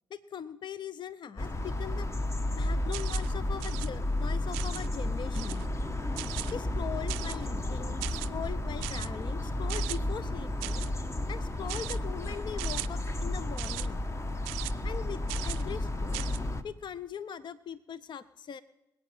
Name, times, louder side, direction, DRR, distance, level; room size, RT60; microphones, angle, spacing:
voice 1, 0.1-2.1 2.5-5.6 6.5-10.9 11.3-14.0 14.8-16.3 16.6-18.6, left 8 dB, 45° left, 17 dB, 0.6 m, -41 dB
sound 1, 1.4-16.6, left 1 dB, 25° left, 1.1 m, -32 dB
sound 2, 2.9-3.3 3.6-3.9 4.5-4.9 5.3-5.7 6.2-6.5 7.1-7.5 8.0-8.3 8.8-9.1 9.7-10.0 10.6-10.9 11.7-12.0 12.6-12.9 13.6-13.9 14.5-14.7 15.3-15.6 16.1-16.4, right 25 dB, 80° right, 0.4 m, -38 dB
25.5 x 8.7 x 4.3 m, 0.96 s
hypercardioid pair, 45°, 11 cm